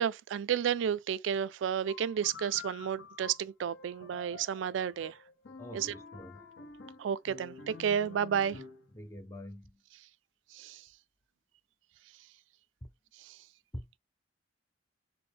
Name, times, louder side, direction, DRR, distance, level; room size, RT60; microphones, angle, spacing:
voice 1, 0.0-5.2 5.7-5.9 7.0-8.6 10.5-10.8 13.2-13.4, right 8 dB, 85° right, 0.3 m, -32 dB
sound 1, 1.9-8.9, left 5 dB, 75° left, 0.7 m, -49 dB
voice 2, 5.6-6.5 8.9-9.8 12.8-12.9 13.7-13.9, left 1 dB, 15° left, 0.4 m, -45 dB
4.2 x 2.1 x 3.3 m
head